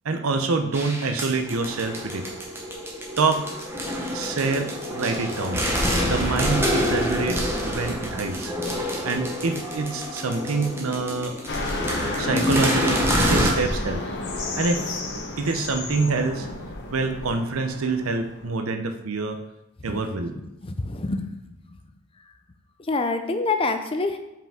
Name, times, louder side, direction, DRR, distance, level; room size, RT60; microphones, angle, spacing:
voice 1, 0.0-2.3 3.2-3.5 4.1-5.6 6.1-8.5 9.0-11.3 12.2-14.1 14.6-15.0 15.4-16.5 16.9-19.4 19.8-20.4, right 3 dB, 90° right, 7 dB, 0.6 m, -26 dB
sound 1, 0.7-13.5, equal, 10° right, 0.9 m, -27 dB
sound 2, 11.5-18.5, left 2 dB, 55° left, 0.9 m, -32 dB
voice 2, 20.6-21.4 22.9-24.2, left 3 dB, 25° left, 8 dB, 0.4 m, -26 dB
5.7 x 4.9 x 3.6 m, 0.92 s
head